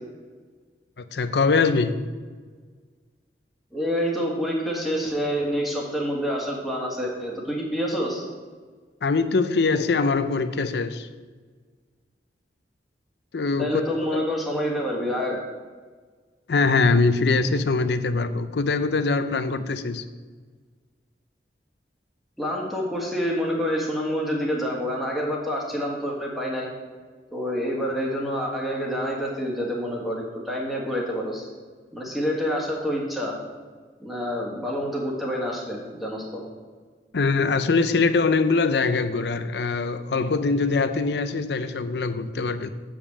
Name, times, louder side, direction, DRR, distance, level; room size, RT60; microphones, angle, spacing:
voice 1, 1.0-2.0 9.0-11.1 13.3-13.8 14.1-14.2 16.5-20.0 37.1-42.7, left 4 dB, 65° left, 0.5 m, -23 dB
voice 2, 3.7-8.2 13.6-15.4 22.4-26.7 27.3-31.5 31.9-33.3 34.0-36.4, equal, ahead, 1.7 m, -27 dB
7.3 x 5.1 x 7.2 m
head